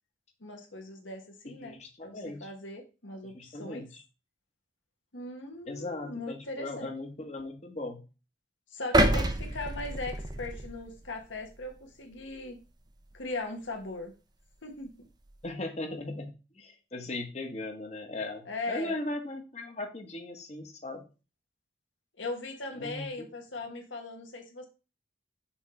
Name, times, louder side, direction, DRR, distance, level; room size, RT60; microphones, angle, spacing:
voice 1, 0.4-3.8 5.1-6.9 8.7-12.6 13.1-14.1 14.6-14.9 18.4-18.9 22.2-24.7, left 2 dB, 75° left, 3 dB, 1.5 m, -39 dB
voice 2, 1.4-2.5 3.2-4.0 5.7-8.0 15.4-21.0 22.8-23.3, left 2 dB, 35° left, 4 dB, 1.2 m, -38 dB
sound 1, 8.9-11.1 11.6-11.7, right 1 dB, 20° right, 0.6 m, -27 dB
5.9 x 3.8 x 4.3 m, 0.31 s
head